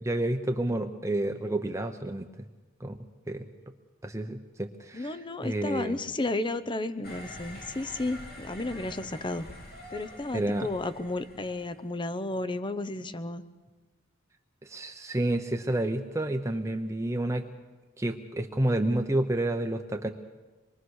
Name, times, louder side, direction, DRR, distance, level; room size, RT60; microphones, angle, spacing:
voice 1, 0.0-2.3 2.8-3.0 3.3-3.5 4.0-5.9 10.3-10.7 14.6-17.5 18.0-20.1, right 1 dB, 15° right, 5 dB, 0.9 m, -29 dB
voice 2, 4.9-9.5 9.9-13.4, left 2 dB, 25° left, 12 dB, 0.8 m, -33 dB
sound 1, 7.0-11.8, left 1 dB, 50° left, 3.1 m, -46 dB
25.5 x 22.0 x 6.5 m, 1.3 s
head